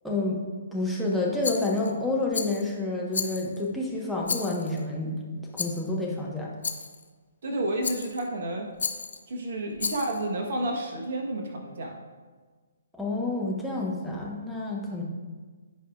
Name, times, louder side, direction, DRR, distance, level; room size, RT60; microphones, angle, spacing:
voice 1, 0.0-0.4 0.7-5.2 5.5-6.5 12.9-15.0, left 2 dB, ahead, -3 dB, 1.3 m, -29 dB
Rattle, 1.4-1.9 2.3-2.7 3.1-3.7 4.2-4.8 5.6-5.9 6.6-7.0 7.8-8.3 8.8-9.2 9.8-10.2, left 5 dB, 60° left, 0.6 m, -33 dB
voice 2, 7.4-8.7 9.3-12.0, right 1 dB, 50° right, 2 dB, 1.3 m, -30 dB
15.0 x 5.0 x 2.5 m, 1.4 s
figure-of-eight pair, 130°, 0 cm